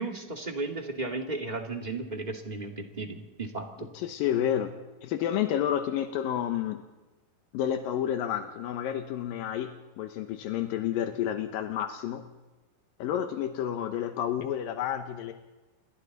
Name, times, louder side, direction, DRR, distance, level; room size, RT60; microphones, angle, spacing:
voice 1, 0.0-3.9, right 3 dB, 15° right, 2 dB, 1.6 m, -35 dB
voice 2, 3.8-4.7 5.0-6.8 7.5-12.3 13.0-15.3, left 10 dB, 85° left, 6 dB, 2.7 m, -30 dB
28.5 x 22.5 x 4.1 m, 1.1 s
omnidirectional pair, 4.0 m